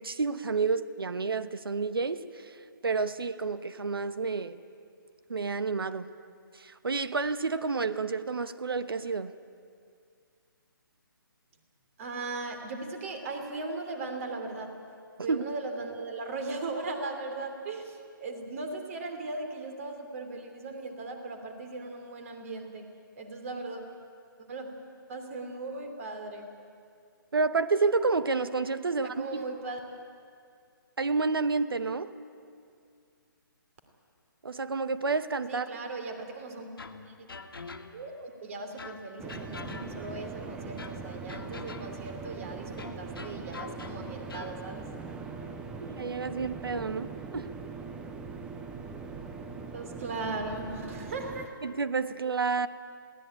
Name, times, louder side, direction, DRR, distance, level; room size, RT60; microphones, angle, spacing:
voice 1, 0.0-2.6 2.8-4.6 5.3-6.1 6.6-9.3 15.3-15.4 27.3-29.5 31.0-32.1 34.4-35.7 45.8-47.5 51.6-52.7, right 4 dB, 85° right, 13 dB, 1.1 m, -30 dB
voice 2, 12.0-14.8 15.2-22.9 23.2-23.8 24.5-24.7 25.1-26.4 28.9-29.8 35.5-36.7 37.1-37.3 37.9-44.9 49.7-51.6, right 3 dB, 40° right, 6 dB, 3.0 m, -38 dB
sound 1, 36.8-38.2 38.8-40.2 40.8-42.1 42.8-44.6, left 4 dB, 85° left, 1.8 m, -45 dB
sound 2, 39.2-51.5, right 5 dB, 10° right, 0.6 m, -41 dB
22.0 x 17.0 x 9.0 m, 2.3 s
hypercardioid pair, 160°, 12 cm